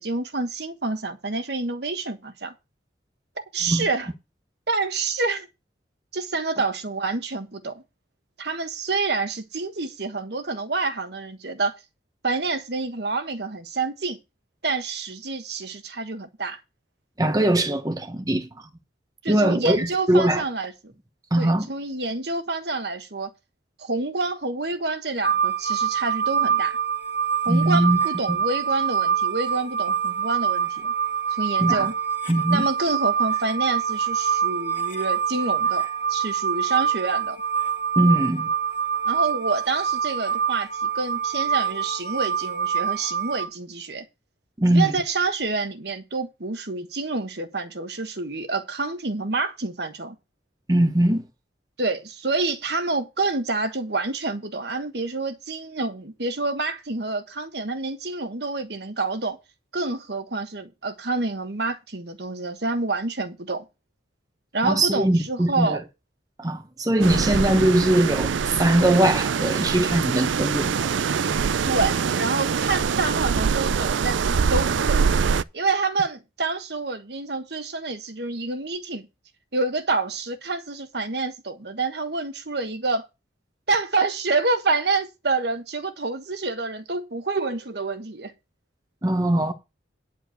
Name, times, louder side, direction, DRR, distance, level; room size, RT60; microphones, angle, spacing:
voice 1, 0.0-2.5 3.5-4.1 4.7-5.5 6.1-7.8 8.4-11.8 12.2-14.2 14.6-16.6 19.2-20.9 21.4-23.3 23.8-26.8 27.4-30.9 31.3-31.9 32.5-37.4 39.0-44.1 44.7-50.2 51.8-59.4 59.7-63.6 64.5-65.8 71.6-75.1 75.5-79.1 79.5-83.1 83.7-88.3, right 3 dB, 60° right, 1.4 m, -28 dB
voice 2, 17.2-18.7 19.3-20.4 21.3-21.7 27.5-28.0 28.3-28.4 31.6-31.9 32.3-32.7 38.0-38.5 44.6-44.9 50.7-51.2 64.6-65.8 66.4-71.0 89.0-89.5, right 1 dB, 20° right, 1.0 m, -21 dB
sound 1, 25.2-43.5, right 8 dB, 25° left, 2.0 m, -25 dB
sound 2, 67.0-75.4, right 6 dB, 85° right, 0.4 m, -24 dB
10.0 x 4.8 x 7.7 m
head